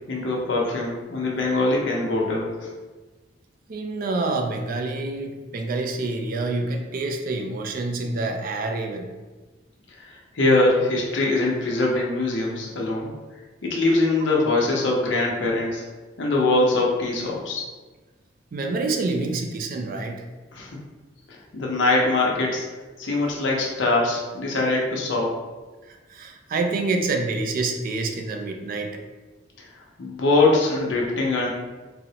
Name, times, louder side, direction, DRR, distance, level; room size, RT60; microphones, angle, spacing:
voice 1, 0.1-2.7 10.0-13.1 13.6-15.8 16.2-17.6 20.5-20.7 21.3-22.7 23.0-25.3 30.0-31.5, left 2 dB, 70° left, -2 dB, 0.7 m, -22 dB
voice 2, 3.7-9.1 18.5-20.2 26.1-29.0, right 3 dB, 50° right, 4 dB, 0.3 m, -27 dB
3.8 x 2.0 x 2.8 m, 1.3 s
head